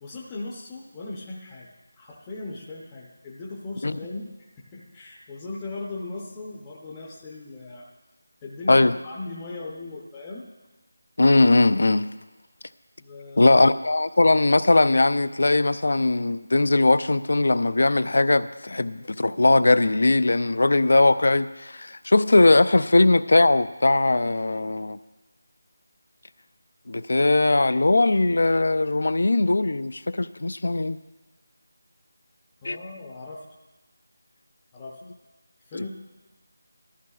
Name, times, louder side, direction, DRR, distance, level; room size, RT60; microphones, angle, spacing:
voice 1, 0.0-1.7 2.0-4.3 4.6-7.9 8.4-10.5 13.0-13.6 32.6-33.4 34.7-35.0 35.6-35.9, left 2 dB, 10° left, 0.7 m, -38 dB
voice 2, 11.2-12.1 13.4-25.0 26.9-31.0 32.6-32.8 35.7-35.9, left 2 dB, 60° left, 0.4 m, -20 dB
16.0 x 13.5 x 2.4 m
figure-of-eight pair, 175°, 0 cm